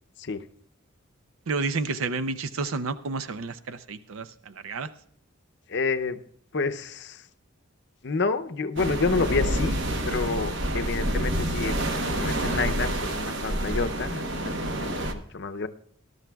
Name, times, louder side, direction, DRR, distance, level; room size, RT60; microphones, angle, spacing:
voice 1, 1.5-4.9, right 4 dB, 80° right, 12 dB, 0.5 m, -30 dB
voice 2, 5.7-6.2 6.5-7.3 8.0-9.8 10.1-15.7, left 4 dB, 55° left, 9 dB, 0.6 m, -29 dB
sound 1, 8.8-15.1, right 1 dB, 60° right, 1.1 m, -28 dB
19.0 x 12.0 x 2.3 m, 0.62 s
head